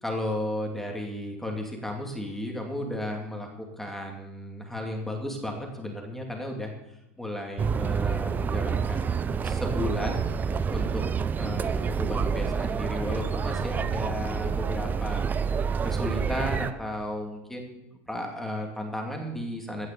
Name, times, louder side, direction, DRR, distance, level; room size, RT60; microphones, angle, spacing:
voice 1, 0.0-6.7 7.2-10.3 10.7-11.0 11.4-15.3 15.8-17.7 18.1-19.9, left 1 dB, 5° left, 1 dB, 2.6 m, -34 dB
sound 1, 7.6-16.7, right 6 dB, 25° right, 0.6 m, -28 dB
16.5 x 6.5 x 6.8 m, 0.91 s
supercardioid pair, 115°, 7 cm